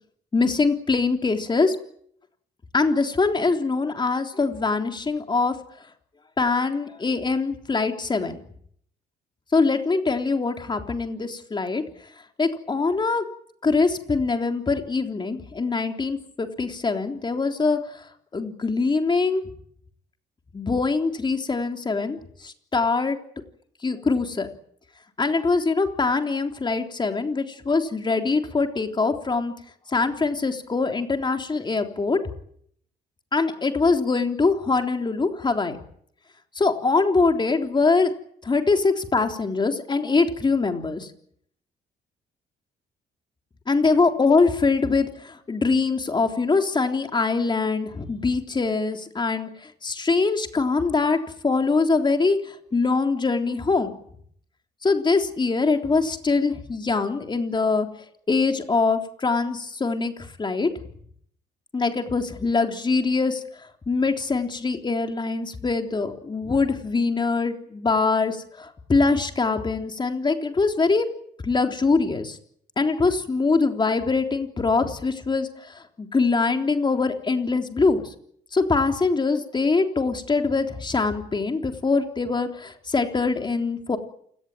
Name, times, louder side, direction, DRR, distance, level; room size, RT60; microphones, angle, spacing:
voice 1, 0.3-1.8 2.7-5.6 6.4-8.4 9.5-11.8 12.4-13.2 13.6-18.0 18.3-19.4 20.5-23.2 23.8-24.5 25.2-29.5 29.9-32.2 33.3-35.8 36.6-38.1 38.4-41.1 43.7-54.0 54.8-57.9 58.3-60.7 61.7-71.1 71.4-72.4 72.8-78.1 78.5-84.0, left 4 dB, 25° left, 5 dB, 3.6 m, -23 dB
28.5 x 18.5 x 9.3 m, 0.67 s
cardioid pair, 110°, 18 cm